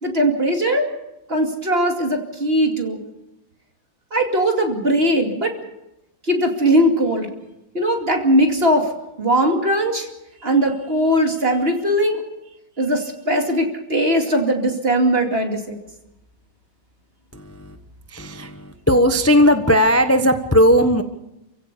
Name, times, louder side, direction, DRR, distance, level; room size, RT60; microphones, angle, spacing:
voice 1, 0.0-0.8 1.3-3.0 4.1-5.5 6.2-7.3 7.7-8.9 9.2-10.1 10.4-12.2 12.8-15.8, equal, 30° right, 3 dB, 2.6 m, -19 dB
voice 2, 17.3-17.8 18.1-21.0, equal, 15° left, 7 dB, 0.6 m, -17 dB
29.0 x 16.0 x 6.9 m, 0.91 s
omnidirectional pair, 2.3 m